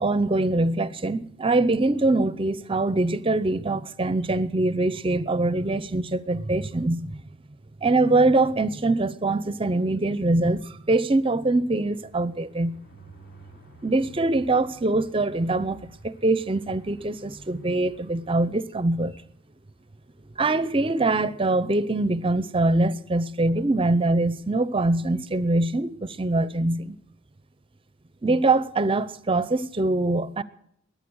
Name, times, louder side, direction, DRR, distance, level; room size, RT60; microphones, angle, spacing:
voice 1, 0.0-7.2 7.8-12.8 13.8-19.1 20.4-27.0 28.2-30.4, right 2 dB, 30° right, 0.7 m, -23 dB
sound 1, 10.6-18.8 19.3-19.4 19.7-19.8 20.1-20.3, right 3 dB, 55° left, 4.7 m, -53 dB
21.5 x 9.3 x 6.3 m
head